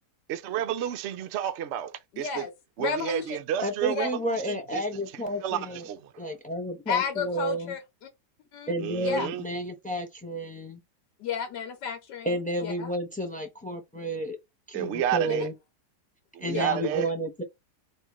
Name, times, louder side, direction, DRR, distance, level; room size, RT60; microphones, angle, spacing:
voice 1, 0.3-2.3 2.8-4.1 4.5-4.8 5.4-6.3 8.8-9.4 14.7-15.5 16.3-17.1, right 10 dB, 90° right, 0.6 m, -30 dB
voice 2, 2.1-2.5 2.8-3.3 3.8-4.1 6.9-8.1 8.5-9.3 11.2-12.9 15.3-15.4 16.5-16.6, left 6 dB, 75° left, 1.5 m, -32 dB
voice 3, 3.6-5.9 6.2-7.7 8.7-10.8 12.2-14.4 14.7-15.5 16.4-17.4, equal, 15° left, 0.3 m, -31 dB
4.3 x 2.5 x 4.7 m
omnidirectional pair, 1.9 m